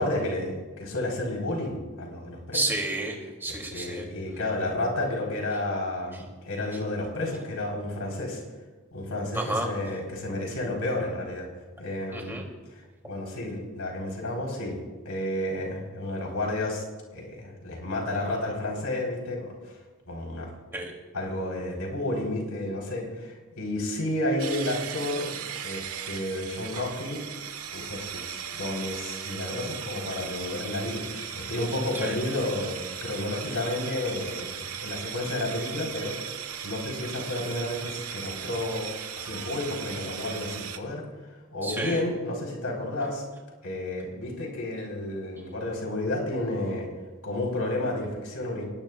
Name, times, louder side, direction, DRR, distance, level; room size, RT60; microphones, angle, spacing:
voice 1, 0.0-2.6 3.7-8.4 8.9-11.5 11.8-12.4 13.0-14.8 15.0-16.8 17.1-19.8 20.1-20.5 21.1-25.4 25.6-27.2 27.7-36.2 36.6-38.9 39.1-41.0 41.5-43.2 43.6-46.9 47.2-48.7, left 1 dB, 80° left, -1 dB, 4.2 m, -31 dB
voice 2, 2.5-4.0 6.1-6.2 9.3-9.7 12.1-12.5 20.7-20.9 31.9-32.1 41.6-42.0, right 2 dB, 10° right, -1 dB, 2.9 m, -31 dB
sound 1, 24.4-40.8, right 8 dB, 85° right, 1.4 m, -37 dB
24.5 x 20.0 x 2.4 m, 1.3 s
head